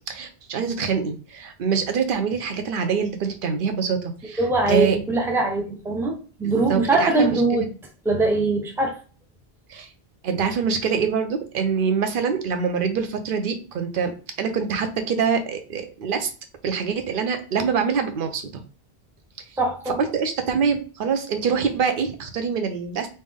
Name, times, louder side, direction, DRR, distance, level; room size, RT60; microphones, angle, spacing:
voice 1, 0.1-5.0 6.4-7.7 9.7-9.9 10.2-16.3 16.6-18.6 20.0-23.1, right 6 dB, 60° right, 0.8 m, -25 dB
voice 2, 4.4-7.7 8.0-9.0 19.6-20.0, right 2 dB, 5° right, 0.6 m, -22 dB
3.3 x 2.7 x 3.5 m
omnidirectional pair, 1.1 m